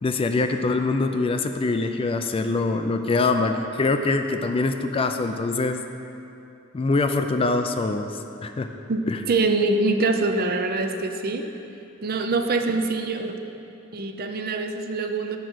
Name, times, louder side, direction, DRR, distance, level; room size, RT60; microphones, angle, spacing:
voice 1, 0.0-5.8 6.7-8.2 8.4-8.7 9.1-9.2, left 3 dB, 25° left, 7 dB, 0.3 m, -24 dB
voice 2, 8.9-11.5 12.0-13.4 13.9-15.4, right 3 dB, 45° right, 6 dB, 0.5 m, -24 dB
7.8 x 5.1 x 6.2 m, 2.8 s
head